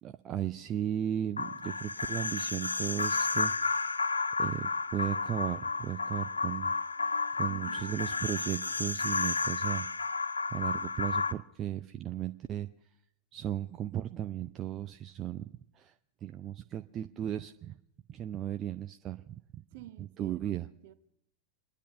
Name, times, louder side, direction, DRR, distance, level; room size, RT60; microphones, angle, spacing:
voice 1, 0.0-3.5 4.4-6.7 7.4-9.9 10.5-12.7 13.3-15.5 15.8-15.9 16.2-17.7 18.1-19.6 20.0-20.7, right 11 dB, 30° right, 8 dB, 0.5 m, -35 dB
sound 1, 1.4-11.3, left 4 dB, 80° left, 0.5 m, -32 dB
voice 2, 7.5-7.9 19.7-20.4 20.8-20.9, right 14 dB, 50° right, 12 dB, 1.0 m, -50 dB
26.0 x 10.0 x 5.4 m, 0.80 s
figure-of-eight pair, 90°, 0 cm